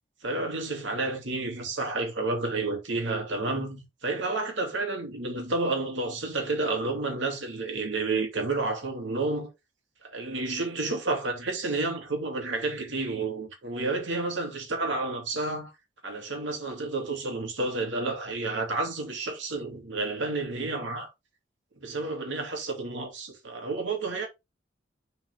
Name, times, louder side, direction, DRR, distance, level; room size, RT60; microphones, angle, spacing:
voice 1, 0.2-9.5 10.0-15.7 16.0-21.1 21.8-24.3, right 3 dB, 80° right, 2.6 m, -30 dB
7.3 x 4.7 x 3.6 m
head